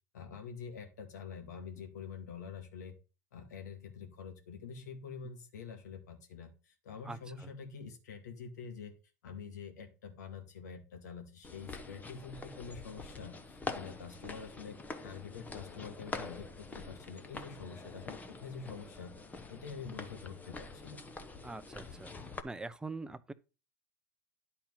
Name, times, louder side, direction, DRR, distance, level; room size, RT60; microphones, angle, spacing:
voice 1, 0.1-2.9 3.3-8.9 9.2-19.1 19.5-21.0, left 6 dB, 80° left, 2.1 m, -46 dB
voice 2, 7.0-7.5 21.4-22.1 22.4-23.3, right 3 dB, 10° right, 0.7 m, -43 dB
sound 1, 11.4-22.4, left 3 dB, 15° left, 1.0 m, -45 dB
10.0 x 4.4 x 5.7 m
hypercardioid pair, 90°, 9 cm